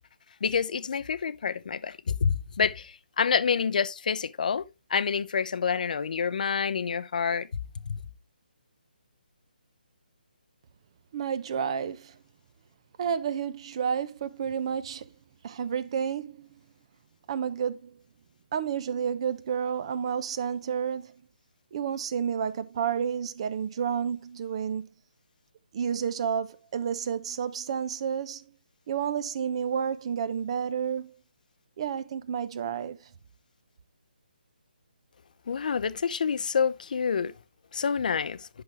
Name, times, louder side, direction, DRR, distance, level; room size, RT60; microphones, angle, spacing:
voice 1, 0.4-4.6 4.9-7.5 7.9-8.0 35.5-37.3 37.7-38.5, left 6 dB, 55° left, 0.7 m, -27 dB
voice 2, 11.1-12.2 13.0-15.1 15.4-16.5 17.3-18.0 18.5-21.1 21.7-24.9 25.7-28.5 28.9-31.1 31.8-33.1, right 7 dB, 35° right, 0.9 m, -30 dB
11.0 x 6.2 x 3.4 m
hypercardioid pair, 165°, 5 cm